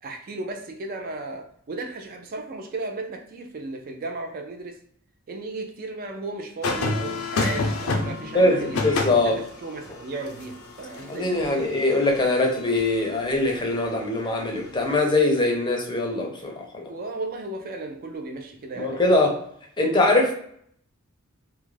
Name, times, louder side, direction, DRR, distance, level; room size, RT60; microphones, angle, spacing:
voice 1, 0.0-4.8 5.3-8.8 9.2-11.7 16.9-19.0, right 2 dB, 45° right, 4 dB, 0.4 m, -35 dB
sound 1, 6.6-13.0 14.8-15.0, left 3 dB, 75° left, 0.4 m, -30 dB
voice 2, 8.3-9.4 11.0-16.5 18.8-19.4 19.8-20.3, left 2 dB, 20° left, 1 dB, 0.5 m, -22 dB
2.3 x 2.1 x 3.0 m, 0.66 s
head